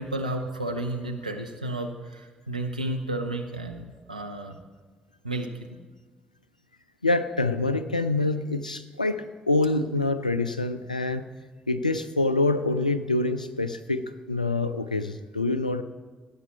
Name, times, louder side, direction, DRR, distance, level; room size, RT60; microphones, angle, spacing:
voice 1, 0.0-4.6 5.2-5.5, right 1 dB, 90° right, 3 dB, 0.7 m, -32 dB
voice 2, 7.0-11.3 11.7-15.8, left 2 dB, 90° left, 12 dB, 0.3 m, -26 dB
17.0 x 8.2 x 4.3 m, 1.4 s
figure-of-eight pair, 40°, 4 cm